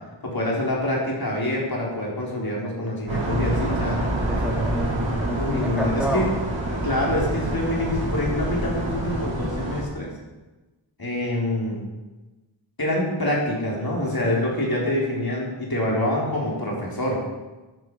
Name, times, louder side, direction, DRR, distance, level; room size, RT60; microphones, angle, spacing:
voice 1, 0.2-4.0 5.4-6.3 6.8-10.1 11.0-11.8 12.8-17.2, left 1 dB, 50° left, -3 dB, 4.3 m, -26 dB
sound 1, 3.1-9.8, right 1 dB, 75° right, 4.6 m, -26 dB
voice 2, 4.3-6.3, equal, ahead, -3 dB, 3.3 m, -29 dB
13.5 x 9.9 x 4.9 m, 1.2 s
cardioid pair, 40°, 47 cm